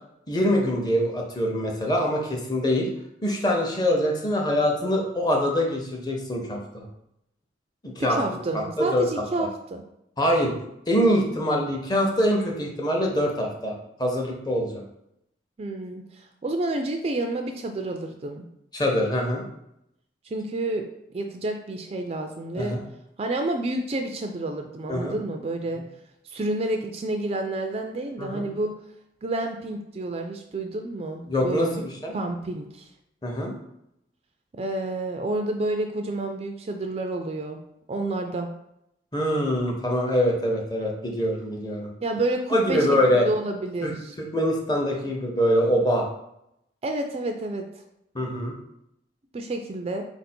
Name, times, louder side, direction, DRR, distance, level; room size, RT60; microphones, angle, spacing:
voice 1, 0.3-2.9 3.2-6.9 7.8-9.0 9.4-9.5 10.2-10.5 10.9-13.7 14.0-14.8 18.7-19.5 22.6-22.8 24.9-25.2 28.2-28.4 31.3-32.1 33.2-33.5 39.1-41.9 42.5-43.3 43.8-43.9 44.2-46.1 48.1-48.5, equal, 20° left, 0 dB, 0.8 m, -24 dB
voice 2, 8.0-9.8 15.6-18.5 20.2-20.8 21.1-22.8 23.2-25.8 26.2-28.8 29.2-31.8 32.1-32.9 34.5-37.6 37.9-38.5 42.0-44.2 46.8-47.6 49.3-50.0, right 2 dB, 35° right, 5 dB, 0.3 m, -29 dB
4.5 x 2.6 x 4.3 m, 0.80 s
head